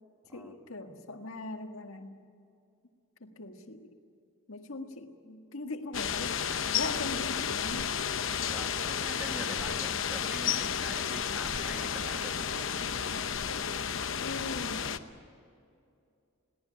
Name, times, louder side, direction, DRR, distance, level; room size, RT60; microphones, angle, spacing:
voice 1, 0.3-2.2 3.2-4.0 4.5-7.9 14.2-14.9, left 2 dB, 85° left, 5 dB, 1.8 m, -40 dB
sound 1, 5.9-15.0, left 7 dB, 70° left, 0.9 m, -32 dB
voice 2, 8.4-12.9, equal, 10° right, 4 dB, 1.7 m, -44 dB
22.0 x 17.0 x 10.0 m, 2.5 s
head